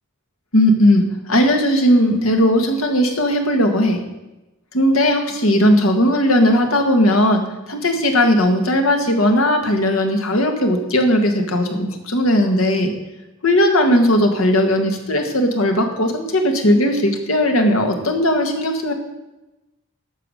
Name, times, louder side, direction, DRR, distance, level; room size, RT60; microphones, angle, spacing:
voice 1, 0.5-4.0 4.7-12.9 13.4-18.9, equal, 80° left, 5 dB, 1.7 m, -17 dB
12.0 x 6.9 x 6.4 m, 1.0 s
head